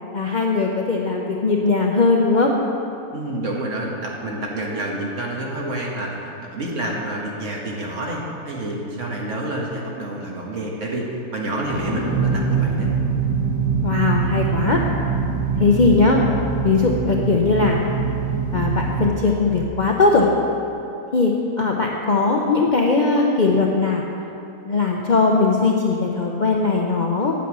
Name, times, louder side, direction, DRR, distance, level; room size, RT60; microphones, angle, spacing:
voice 1, 0.1-2.5 13.8-14.8 15.6-16.2 16.6-17.8 18.5-20.3 21.1-24.0 24.6-27.3, left 3 dB, 50° left, -1 dB, 0.6 m, -19 dB
voice 2, 3.1-6.2 6.4-11.1 11.3-12.9, right 1 dB, 55° right, -2 dB, 1.7 m, -28 dB
sound 1, 11.7-20.4, right 5 dB, 15° right, 0.7 m, -24 dB
8.3 x 8.1 x 6.0 m, 2.8 s
omnidirectional pair, 1.5 m